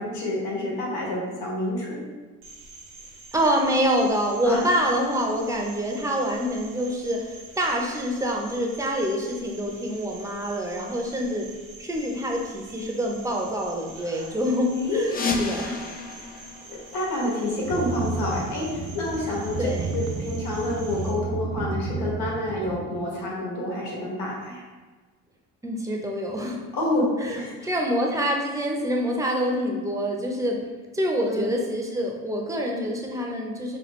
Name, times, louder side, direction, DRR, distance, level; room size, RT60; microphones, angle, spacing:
voice 1, 0.0-2.0 4.5-4.6 14.0-14.3 14.7-15.4 16.7-19.7 19.9-24.7 26.7-27.7 31.2-31.5, left 1 dB, 75° left, -4 dB, 1.5 m, -28 dB
Cricket, 2.4-21.1, right 2 dB, 70° right, 1.0 m, -46 dB
voice 2, 3.3-11.5 11.8-15.8 19.6-20.0 25.6-26.6 27.2-30.6 30.9-33.8, equal, 10° right, 0 dB, 0.7 m, -26 dB
sound 1, 15.0-17.7, left 4 dB, 25° left, 0.5 m, -31 dB
sound 2, 17.6-22.8, right 4 dB, 50° right, 0.6 m, -31 dB
5.0 x 2.3 x 3.1 m, 1.3 s
supercardioid pair, 65°, 37 cm